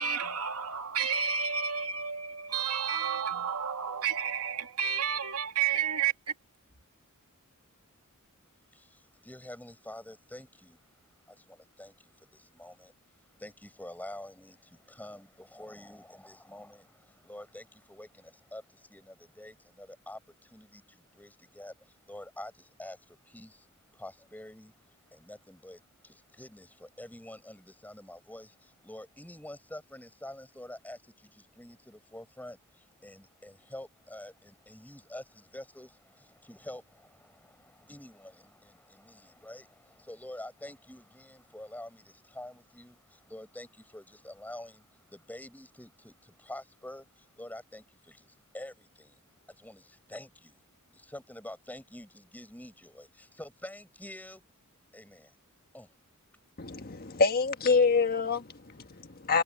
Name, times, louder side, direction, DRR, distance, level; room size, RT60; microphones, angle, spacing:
voice 1, 0.0-6.1, right 7 dB, 85° right, 2.4 m, -31 dB
voice 2, 8.7-10.8 11.3-23.7 23.9-50.6 50.9-54.4 54.9-55.3 55.7-55.9, left 1 dB, 10° left, 7.8 m, -47 dB
voice 3, 56.6-59.4, left 4 dB, 45° left, 1.5 m, -26 dB
head